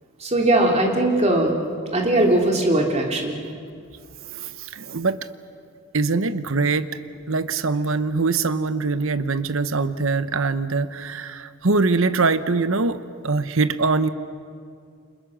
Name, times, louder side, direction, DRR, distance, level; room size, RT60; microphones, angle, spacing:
voice 1, 0.2-1.6 1.9-3.4, right 1 dB, 30° right, 1 dB, 3.0 m, -19 dB
voice 2, 4.3-5.2 5.9-6.9 7.3-13.0 13.2-14.1, right 3 dB, 65° right, 13 dB, 1.0 m, -23 dB
30.0 x 27.0 x 6.4 m, 2.3 s
head